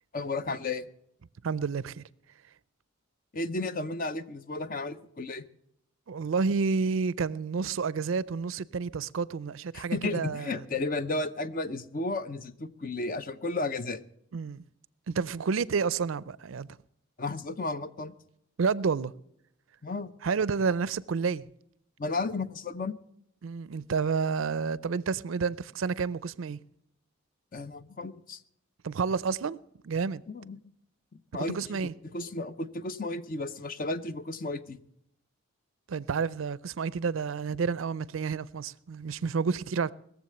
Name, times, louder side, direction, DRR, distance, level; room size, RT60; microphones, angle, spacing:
voice 1, 0.1-0.9 3.3-5.4 9.7-14.0 17.2-18.1 19.8-20.1 22.0-23.0 27.5-28.4 30.3-30.6 31.1-31.8 32.1-34.8, left 3 dB, 40° left, 0.7 m, -33 dB
voice 2, 1.4-2.0 6.1-10.6 14.3-14.6 15.1-16.7 18.6-19.1 20.2-21.5 23.4-26.6 28.8-29.6 29.8-30.2 31.5-31.9 35.9-39.9, right 5 dB, 70° right, 0.4 m, -30 dB
19.5 x 7.4 x 7.7 m
head